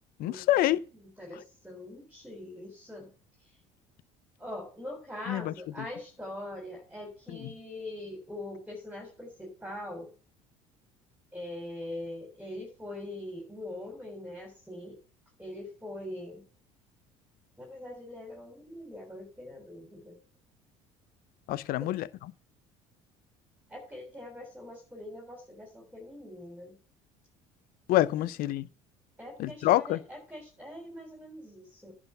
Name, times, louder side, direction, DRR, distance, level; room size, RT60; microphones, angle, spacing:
voice 1, 0.2-0.8 5.3-5.9 7.3-7.5 21.5-22.1 27.9-28.7 29.4-30.0, left 15 dB, 60° left, 0.6 m, -27 dB
voice 2, 1.0-3.1 3.4-3.5 4.4-10.1 11.3-15.0 15.4-16.4 17.6-20.2 21.8-21.9 23.7-26.8 29.2-31.9, left 1 dB, 5° right, 3.7 m, -42 dB
10.5 x 4.9 x 6.7 m
hypercardioid pair, 75°, 17 cm